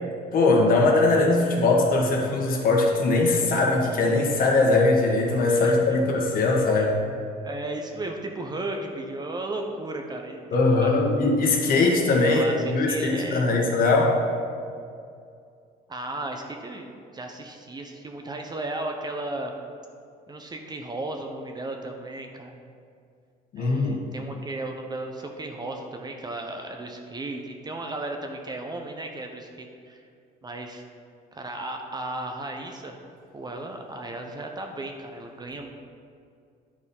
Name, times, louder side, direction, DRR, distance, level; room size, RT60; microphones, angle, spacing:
voice 1, 0.3-7.0 10.5-14.2 23.5-24.0, left 3 dB, 60° left, 0 dB, 1.6 m, -21 dB
voice 2, 7.4-10.4 10.8-10.9 12.2-13.6 15.9-19.5 20.3-22.6 23.6-30.0 30.4-30.8 31.3-33.0 33.3-35.7, right 2 dB, 25° right, 3 dB, 0.8 m, -35 dB
9.9 x 4.4 x 5.4 m, 2.4 s
cardioid pair, 110°, 17 cm